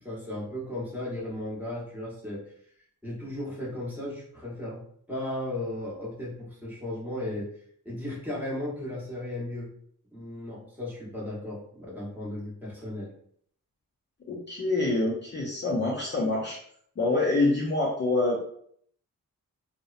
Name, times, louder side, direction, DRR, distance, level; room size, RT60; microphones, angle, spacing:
voice 1, 0.0-2.4 3.0-4.8 5.1-7.5 7.8-9.7 10.1-13.1, left 1 dB, 5° right, -6 dB, 0.8 m, -35 dB
voice 2, 14.3-16.6 17.0-18.4, left 2 dB, 35° left, -3 dB, 0.4 m, -26 dB
2.7 x 2.0 x 2.4 m, 0.64 s
wide cardioid pair, 135°, 35 cm